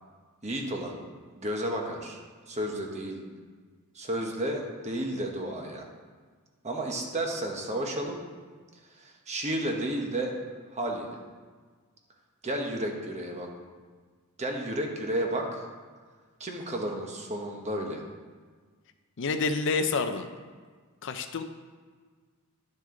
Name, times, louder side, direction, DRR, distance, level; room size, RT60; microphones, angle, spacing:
voice 1, 0.4-0.9 1.4-2.2 2.5-3.2 3.9-5.8 6.6-8.2 9.0-10.3 10.7-11.2 12.4-13.5 14.4-15.6 16.4-18.0, right 1 dB, 30° right, 1 dB, 1.1 m, -32 dB
voice 2, 19.2-20.3 21.0-21.4, left 4 dB, 55° left, 8 dB, 0.5 m, -28 dB
10.5 x 6.3 x 3.8 m, 1.5 s
head